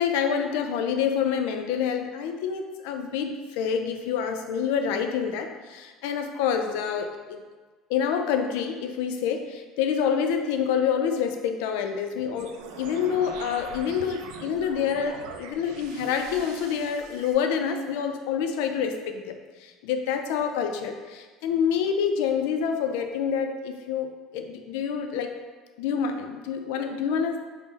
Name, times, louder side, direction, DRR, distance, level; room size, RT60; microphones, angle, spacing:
voice 1, 0.0-7.4 7.9-19.3 19.6-25.3 25.8-27.5, left 7 dB, 85° left, 6 dB, 0.3 m, -27 dB
sound 1, 12.3-17.3, right 6 dB, 85° right, 0.3 m, -42 dB
3.7 x 2.0 x 3.9 m, 1.4 s
cardioid pair, 160°, 0 cm